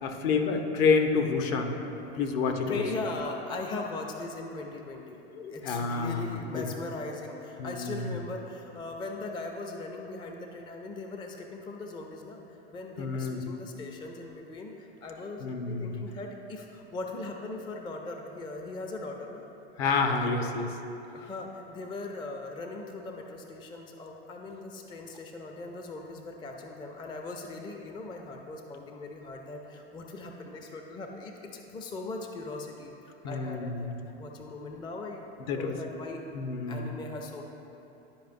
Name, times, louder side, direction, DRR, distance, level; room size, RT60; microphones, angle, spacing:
voice 1, 0.0-1.8 2.1-2.8 5.3-6.7 7.6-8.1 13.0-13.4 15.4-16.0 19.8-20.7 33.2-34.0 35.5-35.8 36.3-36.9, left 4 dB, 55° left, 5 dB, 0.8 m, -29 dB
voice 2, 2.7-5.2 5.5-19.4 21.1-32.9 33.3-33.9 34.2-35.2 35.5-36.2 36.7-37.4, left 3 dB, 15° left, 2 dB, 0.4 m, -39 dB
10.5 x 5.0 x 2.5 m, 2.9 s
hypercardioid pair, 100°, 32 cm